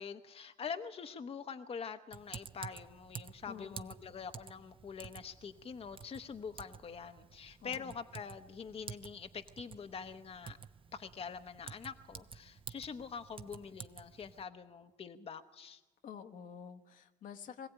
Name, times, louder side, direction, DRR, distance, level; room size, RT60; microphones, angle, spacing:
voice 1, 0.0-10.6 10.9-15.8, left 6 dB, 45° left, 8 dB, 0.9 m, -45 dB
Typing, 2.1-14.4, right 6 dB, 40° right, 0.9 m, -51 dB
voice 2, 3.4-3.9 7.6-7.9 16.0-17.7, left 7 dB, 70° left, 7 dB, 1.2 m, -48 dB
21.5 x 16.0 x 9.0 m, 1.1 s
supercardioid pair, 60°, 14 cm